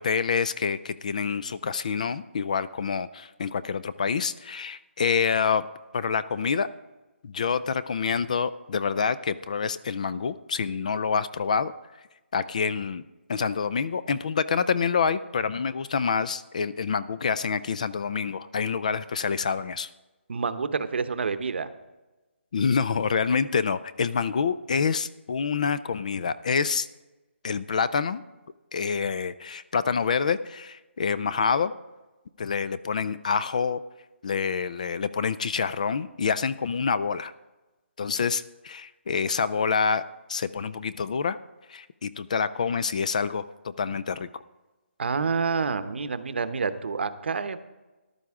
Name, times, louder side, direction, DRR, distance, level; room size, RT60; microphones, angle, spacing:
voice 1, 0.0-5.7 5.9-6.7 7.2-11.7 12.3-13.0 13.3-19.9 22.5-26.9 27.4-28.2 28.7-31.7 32.4-33.8 34.2-37.3 38.0-40.0 40.3-41.4 41.7-44.3, left 6 dB, 35° left, 15 dB, 0.4 m, -27 dB
voice 2, 20.3-21.7 45.0-47.6, right 5 dB, 60° right, 11 dB, 0.9 m, -28 dB
14.0 x 11.5 x 3.6 m, 1.1 s
hypercardioid pair, 170°, 7 cm